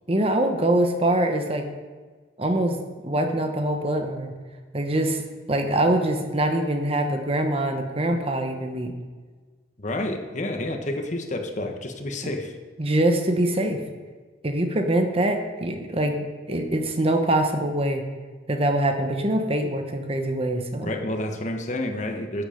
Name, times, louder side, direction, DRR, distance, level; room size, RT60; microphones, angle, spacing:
voice 1, 0.1-1.7 2.4-4.3 4.7-5.2 5.5-8.9 12.8-13.8 14.4-18.0 18.5-20.9, right 1 dB, 30° right, 5 dB, 1.0 m, -24 dB
voice 2, 9.8-12.5 20.8-22.4, left 1 dB, 40° left, 4 dB, 1.2 m, -29 dB
12.0 x 8.4 x 5.1 m, 1.4 s
head